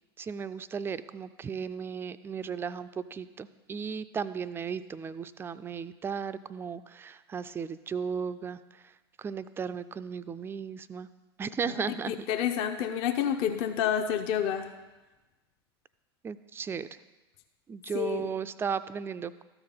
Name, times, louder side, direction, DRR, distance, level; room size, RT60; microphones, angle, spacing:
voice 1, 0.2-8.6 9.2-11.1 11.4-12.2 16.2-16.9 17.7-19.3, right 6 dB, 15° right, 14 dB, 0.4 m, -35 dB
voice 2, 11.6-14.7 17.9-18.3, left 9 dB, 45° left, 6 dB, 0.7 m, -29 dB
13.0 x 5.0 x 5.6 m, 1.1 s
figure-of-eight pair, 85°, 13 cm